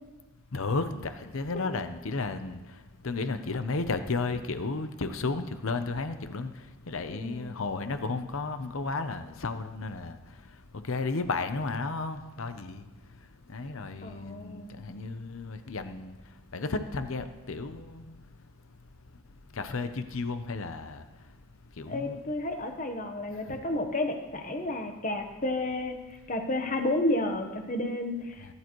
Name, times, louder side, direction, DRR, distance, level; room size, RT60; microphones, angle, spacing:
voice 1, 0.5-2.6 3.0-6.5 6.9-10.2 10.9-12.8 13.5-16.1 16.5-18.1 19.6-21.0 21.8-22.2 23.5-23.6, left 3 dB, 65° left, 0.7 m, -33 dB
voice 2, 7.1-7.6 14.0-14.7 21.9-26.0 26.3-28.5, left 1 dB, 35° left, 1.1 m, -31 dB
18.5 x 11.0 x 3.1 m
head